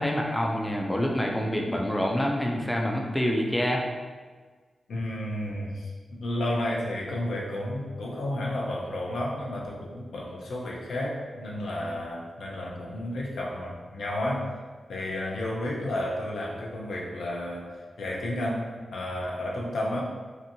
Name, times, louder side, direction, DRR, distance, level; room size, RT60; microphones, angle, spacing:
voice 1, 0.0-3.8, equal, 10° left, 0 dB, 0.4 m, -26 dB
voice 2, 4.9-14.5 14.9-20.0, left 1 dB, 90° left, -2 dB, 0.5 m, -32 dB
2.8 x 2.6 x 2.6 m, 1.4 s
wide cardioid pair, 100°, 0 cm